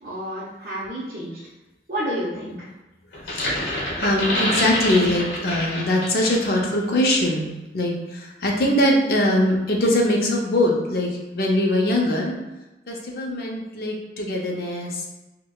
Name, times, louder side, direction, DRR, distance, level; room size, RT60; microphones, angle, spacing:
voice 1, 0.0-1.4 1.9-2.7, equal, 55° right, -8 dB, 0.6 m, -30 dB
sound 1, 3.1-6.6 7.0-7.2, left 1 dB, 75° left, 1.0 m, -27 dB
voice 2, 3.3-12.4 12.9-15.1, left 1 dB, 55° left, -1 dB, 0.7 m, -22 dB
4.6 x 2.2 x 2.3 m, 1.0 s
head